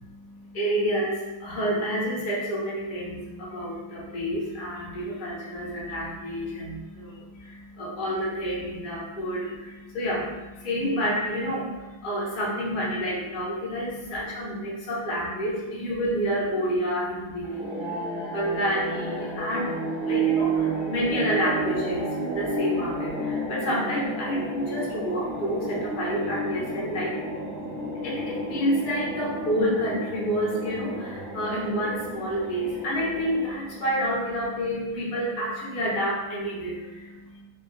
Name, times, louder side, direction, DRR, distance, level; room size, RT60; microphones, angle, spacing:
voice 1, 0.0-37.4, equal, 75° left, -6 dB, 0.4 m, -29 dB
sound 1, 17.4-34.0, right 2 dB, 30° right, 1.0 m, -31 dB
3.3 x 3.2 x 3.2 m, 1.1 s
omnidirectional pair, 2.3 m